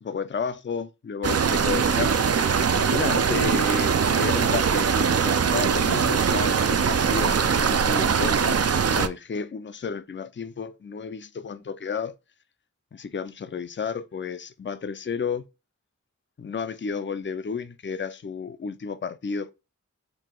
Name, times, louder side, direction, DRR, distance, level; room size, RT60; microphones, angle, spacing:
voice 1, 0.0-2.2 2.9-12.1 12.9-15.4 16.4-19.5, left 5 dB, 40° left, 0.5 m, -32 dB
sound 1, 1.2-9.1, right 6 dB, 55° right, 0.5 m, -22 dB
4.7 x 2.8 x 3.8 m
wide cardioid pair, 85°, 30 cm